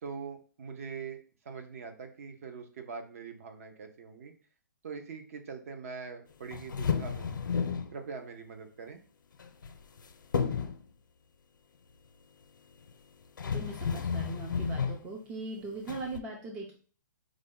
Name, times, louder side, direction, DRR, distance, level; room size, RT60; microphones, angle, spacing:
voice 1, 0.0-4.3 4.8-7.4 7.9-9.0, right 5 dB, 45° right, 6 dB, 0.7 m, -43 dB
sound 1, 6.5-7.9 9.4-10.0 10.3-10.8 12.9-13.0 13.4-15.0 15.9-16.2, left 6 dB, 90° left, 0.6 m, -32 dB
voice 2, 13.5-16.8, right 3 dB, 10° right, 1 dB, 0.4 m, -40 dB
4.8 x 2.2 x 3.7 m, 0.41 s
hypercardioid pair, 160°, 11 cm